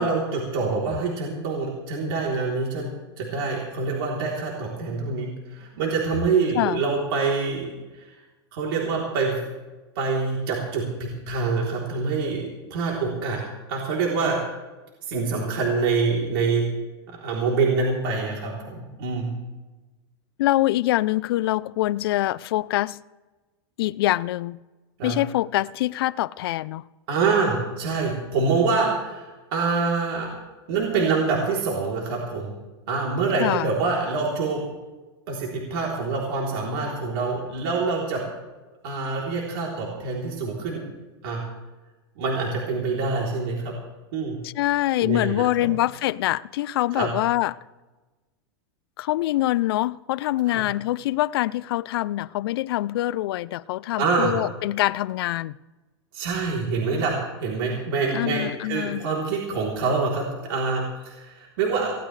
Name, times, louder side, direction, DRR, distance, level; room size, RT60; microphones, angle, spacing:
voice 1, 0.0-2.9 3.2-8.1 8.5-9.4 9.9-13.4 13.7-14.4 15.1-16.6 17.1-19.3 25.0-25.1 27.1-30.3 30.7-32.5 32.9-34.6 35.3-38.2 38.8-40.9 41.2-41.4 42.2-43.7 44.1-44.3 45.0-45.7 46.9-47.1 50.5-50.6 54.0-54.4 56.1-61.9, right 4 dB, 60° right, 3.4 m, -26 dB
voice 2, 20.4-23.0 23.8-24.6 25.0-26.8 33.4-33.7 44.4-47.6 49.0-55.6 58.1-59.1, left 16 dB, 65° left, 0.5 m, -24 dB
19.5 x 17.0 x 3.3 m
supercardioid pair, 160°, 13 cm